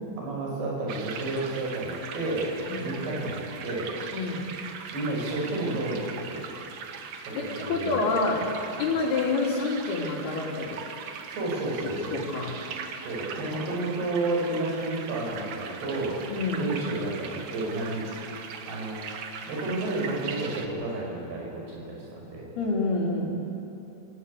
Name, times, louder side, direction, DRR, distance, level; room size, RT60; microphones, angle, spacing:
voice 1, 0.2-3.9 4.9-6.4 7.3-8.0 8.8-9.0 11.3-12.2 13.0-16.2 16.5-18.2 18.7-19.0 19.5-22.5, right 2 dB, 80° right, -3 dB, 7.9 m, -31 dB
sound 1, 0.9-20.7, right 6 dB, 60° right, 2.2 m, -40 dB
voice 2, 4.1-4.4 7.3-8.4 8.8-10.8 11.8-12.6 16.3-16.7 22.6-23.3, left 3 dB, 70° left, -1 dB, 5.0 m, -28 dB
27.5 x 17.0 x 8.5 m, 2.9 s
omnidirectional pair, 4.6 m